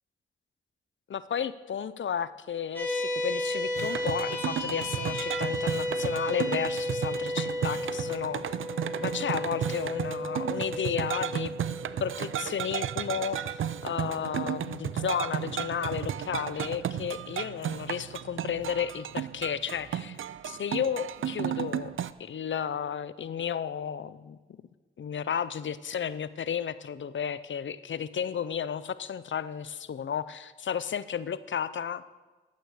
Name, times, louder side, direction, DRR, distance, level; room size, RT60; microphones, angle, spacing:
voice 1, 1.1-8.6 9.0-11.5 12.0-20.2 20.4-21.9 22.2-24.4 25.0-32.0, left 8 dB, 65° left, 16 dB, 0.5 m, -33 dB
sound 1, 2.7-15.4, left 1 dB, 10° left, 3.7 m, -34 dB
sound 2, 3.8-22.1, right 10 dB, 70° right, 0.4 m, -34 dB
11.5 x 7.9 x 4.9 m, 1.3 s
cardioid pair, 45°, 21 cm